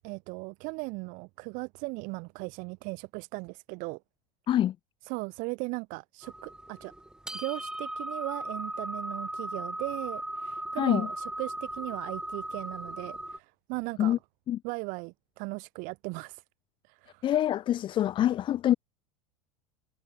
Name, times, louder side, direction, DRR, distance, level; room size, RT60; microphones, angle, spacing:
voice 1, 0.0-4.0 5.1-6.9 7.3-14.2 14.6-16.4 16.9-17.3, right 28 dB, 50° right, 3.6 m, -37 dB
sound 1, 6.2-13.4, right 1 dB, 5° right, 1.3 m, -37 dB
voice 2, 10.8-11.1 14.0-14.2 14.5-14.6 17.2-18.7, left 11 dB, 30° left, 0.7 m, -25 dB
figure-of-eight pair, 80°, 18 cm